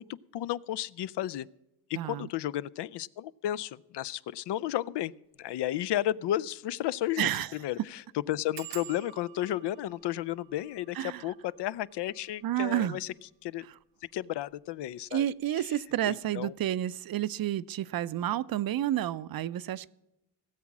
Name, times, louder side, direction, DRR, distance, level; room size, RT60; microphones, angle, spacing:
voice 1, 0.0-1.5 1.9-5.1 5.4-8.0 8.3-13.1 13.4-13.7 14.1-15.2 15.6-15.7 16.1-16.5, left 13 dB, 80° left, 0.5 m, -33 dB
voice 2, 2.0-2.3 7.2-7.5 10.9-11.2 12.4-13.0 15.1-19.9, right 12 dB, 60° right, 0.5 m, -30 dB
sound 1, 5.4-5.6 6.0-6.1 6.3-6.4 7.0-7.2 7.5-7.6 8.5-13.8 14.5-15.0 15.3-15.7 15.9-16.0, right 12 dB, 90° right, 0.9 m, -51 dB
17.5 x 7.5 x 6.0 m
cardioid pair, 110°, 41 cm